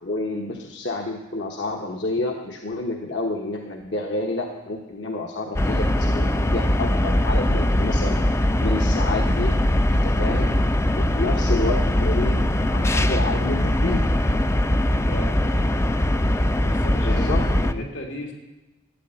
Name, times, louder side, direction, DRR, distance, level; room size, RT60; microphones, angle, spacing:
voice 1, 0.0-8.2 8.6-9.6 9.9-10.6 11.0-12.4 12.7-14.1 17.0-17.4 17.7-17.9, left 2 dB, 65° left, 2 dB, 1.2 m, -29 dB
sound 1, 5.6-17.7, left 1 dB, 15° left, 0.5 m, -21 dB
voice 2, 15.1-15.7 16.6-18.3, equal, 90° left, 0 dB, 3.4 m, -35 dB
13.5 x 8.7 x 9.8 m, 1.0 s
head